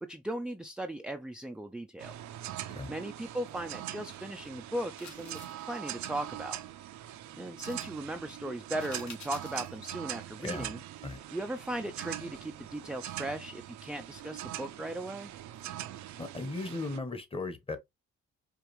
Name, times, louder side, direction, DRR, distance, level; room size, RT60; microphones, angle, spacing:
voice 1, 0.0-2.1 2.9-6.6 7.3-10.8 11.3-15.3, right 1 dB, 5° right, 0.3 m, -38 dB
sound 1, 2.0-17.0, right 13 dB, 70° right, 0.5 m, -42 dB
sound 2, 5.0-5.6 7.6-7.9 8.8-9.8 10.2-10.3, left 5 dB, 65° left, 1.7 m, -49 dB
voice 2, 10.4-10.8 11.0-11.2 16.2-17.8, left 3 dB, 20° left, 1.0 m, -37 dB
4.8 x 2.5 x 3.0 m
cardioid pair, 90°, 30 cm